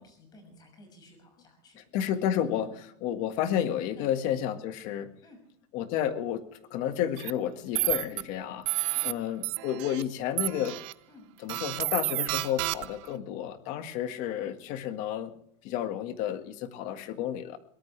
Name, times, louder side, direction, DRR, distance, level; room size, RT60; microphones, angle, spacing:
voice 1, 0.0-1.8 2.5-2.7 4.0-4.1 5.2-5.4 8.1-8.3 8.9-9.1 11.1-11.3 13.1-13.3 14.1-14.3, left 2 dB, 25° left, 5 dB, 6.2 m, -53 dB
voice 2, 1.9-2.7 3.0-5.1 5.7-6.4 6.7-10.8 11.4-15.3 15.6-17.6, left 10 dB, 50° left, 9 dB, 1.8 m, -31 dB
sound 1, 7.2-7.3 7.8-8.2 8.7-9.1 9.4-10.0 10.4-10.9 11.5-13.1, right 22 dB, 60° right, 0.7 m, -30 dB
22.5 x 18.0 x 3.4 m, 0.66 s
cardioid pair, 170°, 16 cm